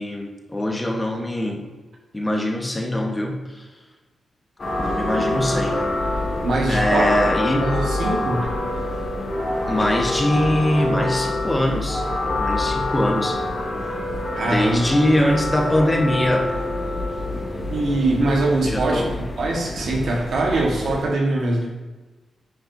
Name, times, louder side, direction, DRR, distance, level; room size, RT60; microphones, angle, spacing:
voice 1, 0.0-1.6 2.1-3.6 4.8-5.8 6.7-7.7 9.6-12.0 12.4-13.4 14.4-16.5 18.6-19.1, left 1 dB, 20° left, 1 dB, 1.2 m, -22 dB
sound 1, 4.6-21.0, left 2 dB, 45° left, 2.0 m, -26 dB
voice 2, 6.4-7.1 7.6-8.5 14.3-14.8 17.3-17.4 17.7-19.0 19.4-21.7, right 2 dB, 70° right, -1 dB, 1.4 m, -22 dB
9.6 x 4.5 x 2.7 m, 1.2 s
supercardioid pair, 50°, 0 cm